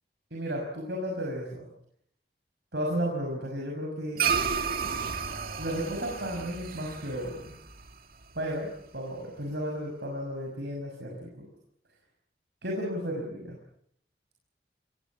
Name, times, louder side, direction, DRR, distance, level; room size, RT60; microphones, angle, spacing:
voice 1, 0.3-1.7 2.7-4.3 5.6-7.4 8.3-11.5 12.6-13.6, equal, 70° right, 0 dB, 6.1 m, -33 dB
sound 1, 4.2-8.8, right 6 dB, 55° right, 2.5 m, -32 dB
26.5 x 21.0 x 7.3 m, 0.72 s
head